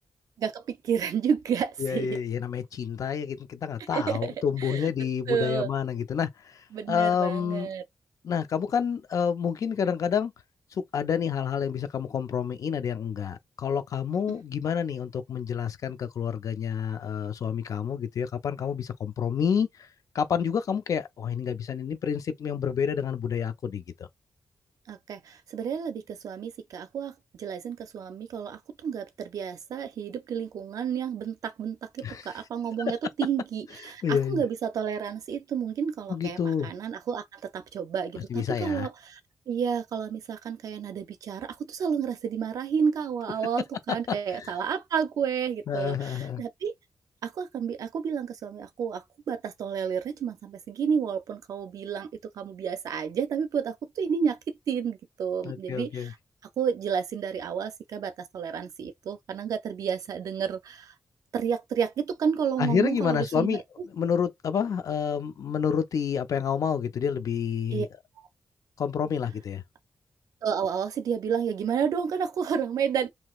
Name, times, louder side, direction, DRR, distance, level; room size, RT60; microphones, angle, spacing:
voice 1, 0.4-2.2 3.9-4.9 5.3-5.7 6.7-7.8 24.9-39.2 39.5-46.7 47.2-56.2 56.6-60.9 61.3-63.6 67.7-67.9 68.2-68.3 70.4-73.1, right 7 dB, 80° right, 0.4 m, -31 dB
voice 2, 1.8-7.7 8.2-10.3 10.7-19.9 20.1-23.8 32.0-32.4 34.0-34.4 36.1-36.7 38.3-38.9 44.3-44.5 45.7-46.4 55.4-56.1 62.6-63.6 63.9-67.9 68.8-69.6, left 7 dB, 70° left, 0.5 m, -29 dB
3.0 x 2.8 x 2.3 m
cardioid pair, 65°, 6 cm